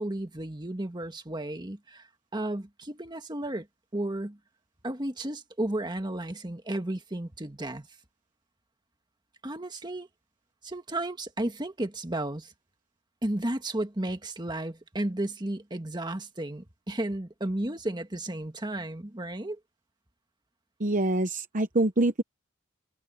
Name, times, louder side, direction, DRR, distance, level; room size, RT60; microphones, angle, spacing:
voice 1, 0.0-3.7 3.9-4.4 4.8-7.9 9.4-10.1 10.6-12.5 13.2-19.6, right 1 dB, 20° right, 1.6 m, -33 dB
voice 2, 20.8-22.2, right 2 dB, 40° right, 0.9 m, -25 dB
head